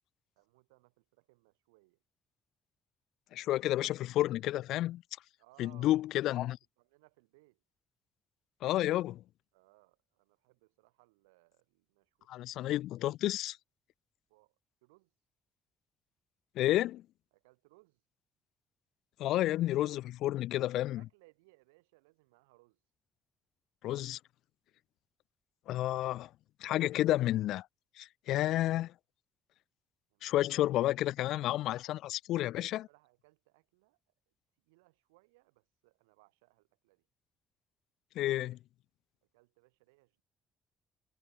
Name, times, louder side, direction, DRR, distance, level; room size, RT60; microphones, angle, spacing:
voice 1, 0.4-2.0 5.4-5.9 6.3-7.6 9.5-12.6 14.3-14.6 14.8-15.1 17.3-18.0 20.5-22.8 30.1-30.6 32.7-34.0 34.6-37.1 39.3-40.2, right 24 dB, 85° right, 5.5 m, -66 dB
voice 2, 3.3-5.0 5.6-6.6 8.6-9.2 12.3-13.6 16.6-17.0 19.2-21.0 23.8-24.2 25.7-26.3 26.6-27.7 28.0-28.9 30.2-32.9 38.2-38.6, left 14 dB, 70° left, 0.5 m, -31 dB
hypercardioid pair, 50°, 0 cm